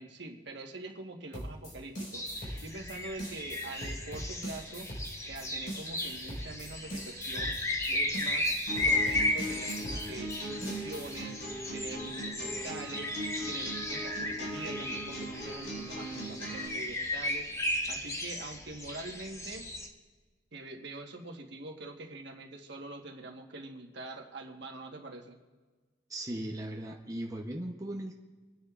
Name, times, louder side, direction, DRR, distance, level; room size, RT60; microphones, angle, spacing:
voice 1, 0.0-2.3 2.6-4.9 5.3-7.6 7.8-8.5 8.8-11.4 11.7-19.7 20.5-25.4, right 2 dB, 60° right, 2 dB, 1.3 m, -44 dB
sound 1, 1.3-11.2, equal, 45° left, 4.7 m, -41 dB
sound 2, 2.1-19.9, left 1 dB, 15° left, 0.8 m, -35 dB
sound 3, 8.7-16.7, right 1 dB, 70° left, 4.7 m, -40 dB
voice 2, 26.1-28.2, right 1 dB, 20° right, 0 dB, 0.8 m, -38 dB
24.5 x 9.9 x 2.5 m, 1.4 s
head